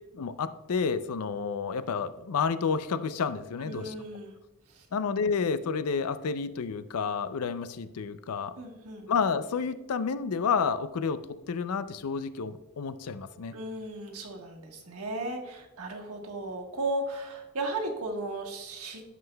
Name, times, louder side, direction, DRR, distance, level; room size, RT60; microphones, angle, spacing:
voice 1, 0.1-3.9 4.9-8.5 9.1-11.2 11.5-13.5, left 5 dB, 80° left, 13 dB, 0.5 m, -30 dB
voice 2, 3.6-4.4 4.7-4.9 8.6-9.1 13.5-19.0, right 2 dB, 75° right, 0 dB, 1.4 m, -35 dB
11.0 x 7.4 x 2.2 m, 1.0 s
head